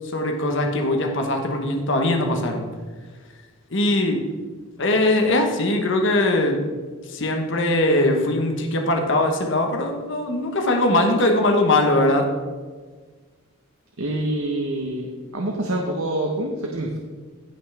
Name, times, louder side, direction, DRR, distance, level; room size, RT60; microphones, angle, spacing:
voice 1, 0.1-2.7 3.7-4.3 4.8-6.6 7.0-12.3, left 1 dB, 60° left, 3 dB, 1.3 m, -21 dB
voice 2, 14.0-17.0, right 1 dB, 80° right, 0 dB, 1.1 m, -26 dB
16.5 x 5.7 x 3.5 m, 1.4 s
head